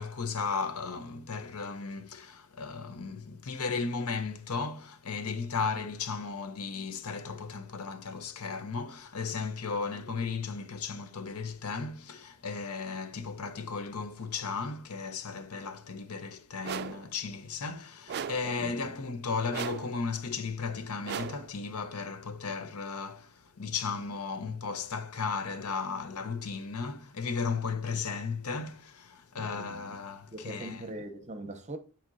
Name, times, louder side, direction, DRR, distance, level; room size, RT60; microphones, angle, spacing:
voice 1, 0.0-30.8, left 5 dB, 75° left, 0.7 m, -35 dB
sound 1, 16.6-17.1 18.1-18.6 19.5-20.0 21.0-21.5, right 7 dB, 45° right, 0.4 m, -37 dB
voice 2, 18.4-18.8 29.3-29.8 30.3-31.8, right 1 dB, 30° right, 0.8 m, -42 dB
10.0 x 4.3 x 2.6 m
head